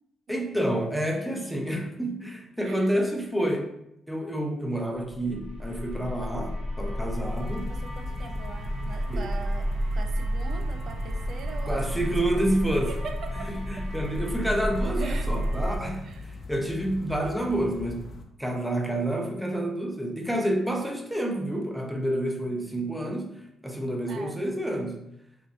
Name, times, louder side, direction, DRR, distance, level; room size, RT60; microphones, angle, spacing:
voice 1, 0.3-3.7 4.1-7.7 9.1-9.2 11.7-12.9 13.5-18.1 18.4-23.3 23.6-25.0, right 1 dB, ahead, 1 dB, 0.5 m, -29 dB
sound 1, 5.1-15.8, equal, 80° right, 0.7 m, -31 dB
sound 2, 7.2-18.2, left 2 dB, 50° left, 0.4 m, -42 dB
voice 2, 7.7-12.5 12.9-13.9 15.0-16.3 24.1-24.4, right 5 dB, 60° right, 7 dB, 0.3 m, -42 dB
3.6 x 2.1 x 2.5 m, 0.82 s
cardioid pair, 90°, 0 cm